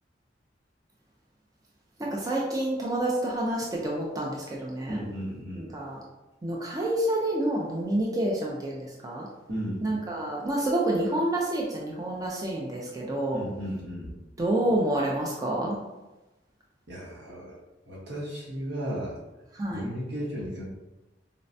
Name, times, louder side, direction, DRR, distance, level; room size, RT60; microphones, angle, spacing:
voice 1, 2.0-5.0 5.5-6.0 6.4-9.3 9.8-13.4 14.4-15.8 19.5-19.8, right 1 dB, 20° right, -3 dB, 0.4 m, -28 dB
voice 2, 4.9-5.7 9.5-9.8 13.3-14.1 16.9-17.5 17.9-19.1 19.7-20.6, equal, 65° right, -5 dB, 1.0 m, -34 dB
4.0 x 2.1 x 2.6 m, 1.0 s
head